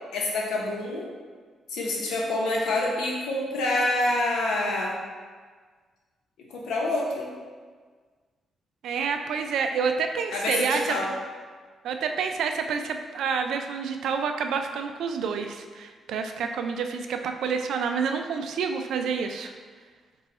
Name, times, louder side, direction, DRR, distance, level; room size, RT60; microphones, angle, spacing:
voice 1, 0.1-1.1 1.7-4.9 6.5-7.3 10.3-11.1, left 2 dB, 85° left, -2 dB, 0.8 m, -27 dB
voice 2, 8.8-11.0 11.8-19.5, right 6 dB, 80° right, 6 dB, 0.3 m, -28 dB
4.1 x 2.2 x 4.1 m, 1.5 s
cardioid pair, 80°, 0 cm